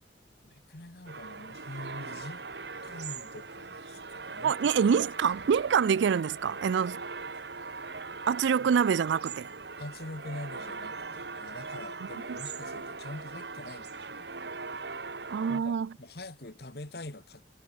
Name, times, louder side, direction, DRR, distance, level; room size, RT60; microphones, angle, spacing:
voice 1, 0.4-2.4 2.8-4.7 8.6-8.7 9.8-14.5 15.5-17.4, left 1 dB, 60° left, 1.9 m, -44 dB
sound 1, 1.1-15.6, right 4 dB, 70° right, 2.2 m, -40 dB
voice 2, 4.4-7.0 8.3-9.5 12.3-12.4 15.3-15.9, right 7 dB, 85° right, 0.4 m, -26 dB
head